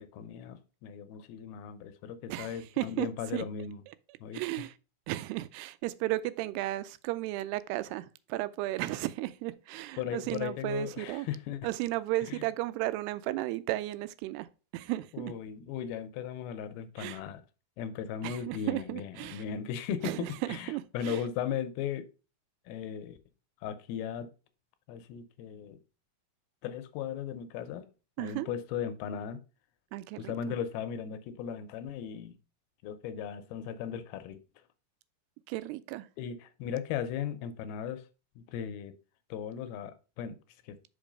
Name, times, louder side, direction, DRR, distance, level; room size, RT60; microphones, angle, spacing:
voice 1, 0.0-3.8 4.2-4.7 10.0-11.6 12.3-12.4 15.1-17.4 17.8-22.1 22.7-23.2 23.6-24.3 24.9-25.8 26.6-27.9 28.2-29.4 30.2-32.4 32.8-34.4 36.2-38.1 38.4-38.9 39.3-40.4 40.6-40.8, left 8 dB, 80° left, 2.4 m, -37 dB
voice 2, 2.3-3.1 3.3-3.4 4.3-4.7 5.1-11.3 11.6-14.5 14.7-15.3 17.0-17.2 18.2-19.4 20.0-20.3 20.7-21.2 28.2-28.5 29.9-30.3 35.5-36.1, right 17 dB, 90° right, 2.6 m, -34 dB
5.4 x 5.2 x 5.1 m
omnidirectional pair, 4.6 m